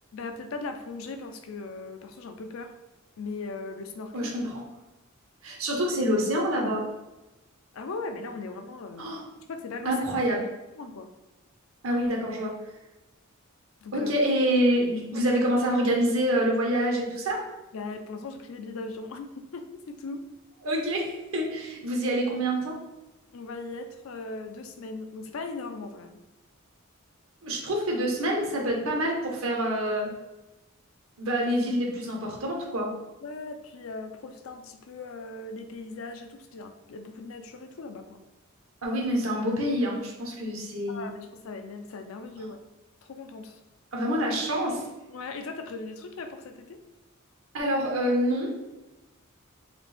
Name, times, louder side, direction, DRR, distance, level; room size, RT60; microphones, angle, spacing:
voice 1, 0.1-2.7 3.2-4.3 7.7-10.0 10.8-11.1 13.8-14.1 17.7-20.3 23.3-26.2 33.2-38.2 40.9-42.6 43.0-43.6 45.1-46.8, left 3 dB, 70° left, 7 dB, 0.4 m, -39 dB
voice 2, 5.4-6.8 9.0-9.2 9.8-10.4 11.8-12.5 13.9-17.4 20.6-22.7 27.4-30.1 31.2-32.9 38.8-41.1 43.9-44.8 47.5-48.5, equal, 75° right, -1 dB, 1.0 m, -26 dB
4.0 x 2.5 x 3.4 m, 1.0 s
head